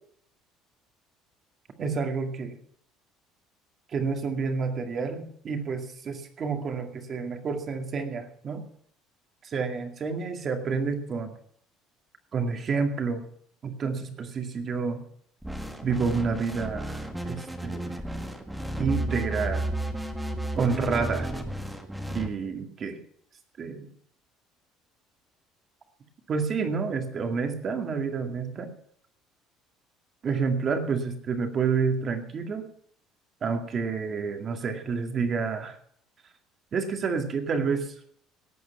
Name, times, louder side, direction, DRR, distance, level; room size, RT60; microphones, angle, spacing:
voice 1, 1.8-2.6 3.9-8.6 9.4-11.3 12.3-13.3 13.6-15.0 15.8-18.0 18.8-19.7 20.5-21.3 22.1-23.0 23.6-23.9 26.3-28.7 30.2-32.7 33.4-35.8 36.7-37.9, right 5 dB, 30° right, 5 dB, 2.1 m, -29 dB
sound 1, 15.4-22.3, right 1 dB, 5° right, 1.6 m, -33 dB
18.5 x 8.4 x 6.0 m, 0.64 s
cardioid pair, 165°, 0 cm